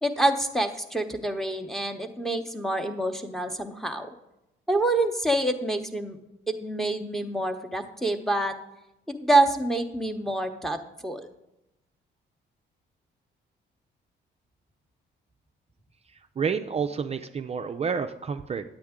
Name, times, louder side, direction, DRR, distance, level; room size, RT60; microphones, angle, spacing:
voice 1, 0.0-4.1 4.7-6.2 6.5-8.5 9.1-11.3, right 2 dB, ahead, 4 dB, 0.9 m, -26 dB
voice 2, 16.4-18.6, right 6 dB, 30° right, 7 dB, 0.4 m, -29 dB
9.0 x 8.9 x 3.6 m, 0.90 s
cardioid pair, 90°, 20 cm